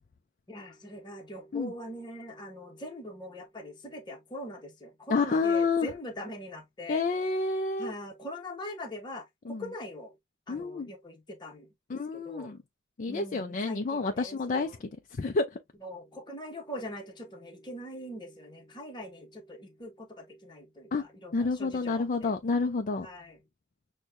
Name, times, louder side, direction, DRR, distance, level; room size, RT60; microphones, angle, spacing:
voice 1, 0.5-7.0 7.8-10.1 10.5-11.7 12.1-12.5 13.1-14.7 15.8-22.3 23.0-23.4, left 1 dB, 25° left, 1.0 m, -42 dB
voice 2, 5.1-5.9 6.9-7.9 9.5-9.6 10.5-10.9 11.9-12.6 13.0-14.9 15.2-15.6 20.9-21.0 21.3-23.1, left 4 dB, 40° left, 0.4 m, -29 dB
6.2 x 2.2 x 2.6 m
head